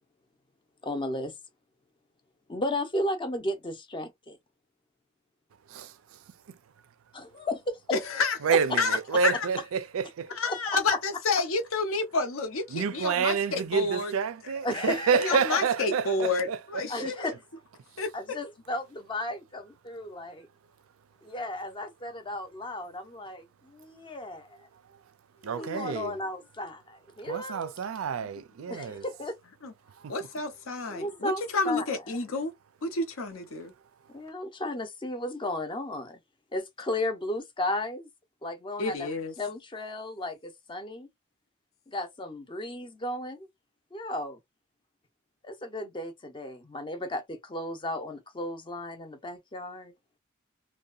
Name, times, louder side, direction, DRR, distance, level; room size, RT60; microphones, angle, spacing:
voice 1, 0.8-1.3 2.5-4.4 7.1-8.0 9.1-9.2 10.5-11.0 14.6-15.6 16.9-17.4 18.1-20.5 21.2-24.6 25.5-27.7 28.7-29.4 30.9-31.8 34.1-36.2 36.5-38.1 38.4-41.1 41.9-43.5 43.9-44.4 45.4-49.9, left 1 dB, 25° left, 0.6 m, -34 dB
voice 2, 5.7-6.2 8.4-10.3 12.7-16.6 17.0-17.1 25.4-26.2 27.2-29.0 30.0-30.1, right 6 dB, 85° right, 0.4 m, -29 dB
voice 3, 7.9-8.4 8.8-9.0 9.2-9.5 10.3-14.1 15.2-17.3 18.0-18.1 25.4-26.0 29.6-29.7 30.1-32.5 32.8-33.7 38.8-39.3, left 3 dB, 75° left, 0.8 m, -29 dB
2.7 x 2.1 x 2.4 m
head